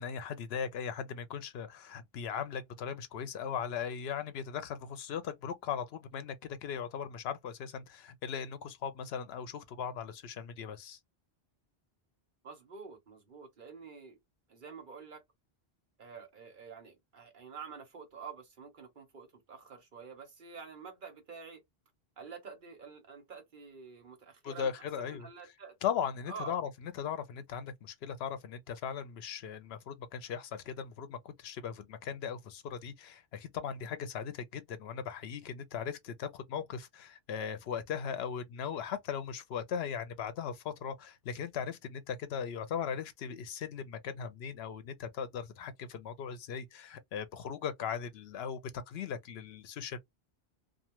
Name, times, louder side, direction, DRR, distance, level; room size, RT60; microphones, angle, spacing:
voice 1, 0.0-6.4 6.6-11.0 24.4-25.3 25.8-48.6 48.9-50.0, left 7 dB, 80° left, 0.8 m, -38 dB
voice 2, 12.4-14.2 14.5-15.2 16.0-21.6 22.2-24.7 25.0-25.8 26.3-26.6, right 5 dB, 55° right, 1.0 m, -48 dB
2.4 x 2.3 x 2.9 m
omnidirectional pair, 1.1 m